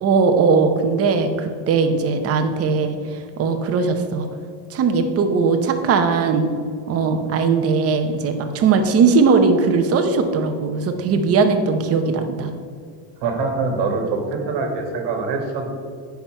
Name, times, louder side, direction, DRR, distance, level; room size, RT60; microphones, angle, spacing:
voice 1, 0.0-4.3 4.7-6.5 6.9-12.5, right 4 dB, 30° right, 6 dB, 0.7 m, -19 dB
voice 2, 13.2-15.7, right 4 dB, 55° right, 3 dB, 1.5 m, -24 dB
9.2 x 5.8 x 4.4 m, 2.2 s
cardioid pair, 175°, 47 cm